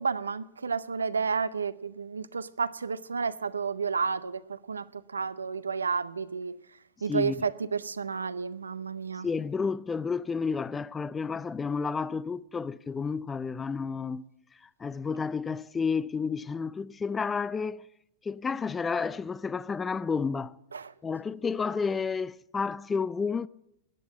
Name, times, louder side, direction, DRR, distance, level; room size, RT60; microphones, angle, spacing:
voice 1, 0.0-4.9 5.1-6.6 7.0-9.3 20.7-20.9, right 5 dB, 85° right, 0.5 m, -31 dB
voice 2, 9.2-14.3 14.8-17.8 18.2-20.5 21.0-23.5, left 5 dB, 15° left, 0.4 m, -31 dB
13.0 x 8.8 x 7.4 m
hypercardioid pair, 100°, 0 cm